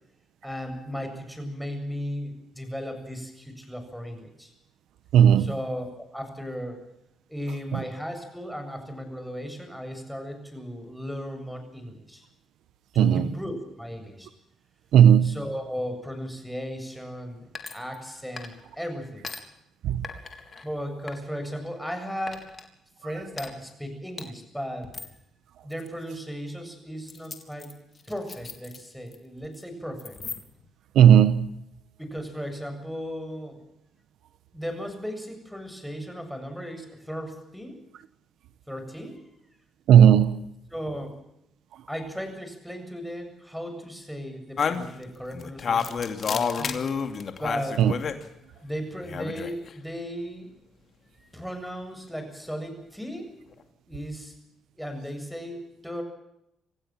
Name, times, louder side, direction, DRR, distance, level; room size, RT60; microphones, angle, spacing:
voice 1, 0.4-4.5 5.4-5.8 6.1-6.8 7.3-12.2 12.9-14.3 15.2-19.3 20.6-22.5 23.0-24.9 25.6-27.7 28.1-30.2 32.0-33.6 34.5-37.8 38.7-39.3 40.7-41.2 41.9-46.8 47.4-47.9 48.6-50.5 51.3-53.3 53.9-54.3 54.7-56.0, equal, ahead, 7.4 m, -36 dB
voice 2, 5.1-5.5 13.0-13.3 14.9-15.3 19.8-20.0 30.9-31.5 39.9-40.4 47.8-47.9, right 9 dB, 80° right, 1.2 m, -15 dB
sound 1, 17.5-18.1 18.4-18.8 19.2-19.4 20.0-20.6 21.1-21.9 22.3-22.7 23.3-23.5 24.2-24.3 24.8-25.2 25.7-25.9 27.1-29.2 29.4-29.6 30.0-30.7, left 4 dB, 35° left, 3.7 m, -40 dB
sound 2, 44.6-48.2 49.0-49.7, left 6 dB, 50° left, 2.7 m, -28 dB
27.0 x 16.0 x 7.5 m
cardioid pair, 90°, 0 cm